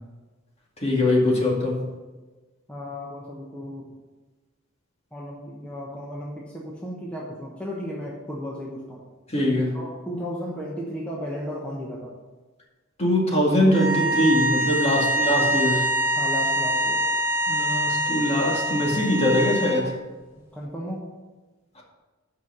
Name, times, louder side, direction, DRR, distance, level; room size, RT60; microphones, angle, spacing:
voice 1, 0.8-1.9 9.3-9.8 13.0-15.9 17.5-19.9, left 1 dB, 30° left, -2 dB, 2.0 m, -22 dB
voice 2, 2.7-3.9 5.1-9.0 9.7-12.2 16.2-17.0 20.5-21.0, equal, 5° left, -5 dB, 1.1 m, -34 dB
sound 1, 13.7-19.8, right 1 dB, 10° right, 1.8 m, -24 dB
8.2 x 5.7 x 6.1 m, 1.3 s
head